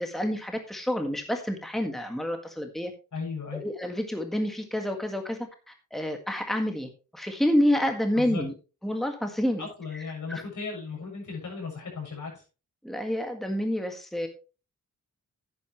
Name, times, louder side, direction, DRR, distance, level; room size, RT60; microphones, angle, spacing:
voice 1, 0.0-2.9 3.5-8.5 8.8-9.7 9.9-10.0 10.3-10.4 12.8-14.3, equal, ahead, 4 dB, 1.8 m, -28 dB
voice 2, 3.1-3.6 8.2-8.5 9.6-12.4, left 5 dB, 70° left, -1 dB, 7.2 m, -36 dB
11.0 x 10.0 x 3.1 m, 0.33 s
cardioid pair, 80°, 32 cm